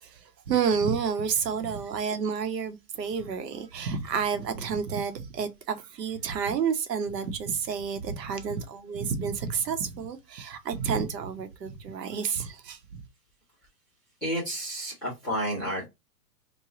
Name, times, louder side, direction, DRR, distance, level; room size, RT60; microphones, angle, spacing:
voice 1, 0.0-13.0, right 6 dB, 85° right, 1.0 m, -30 dB
voice 2, 14.2-15.9, equal, ahead, 0.4 m, -31 dB
3.1 x 2.3 x 3.7 m
hypercardioid pair, 155°, 48 cm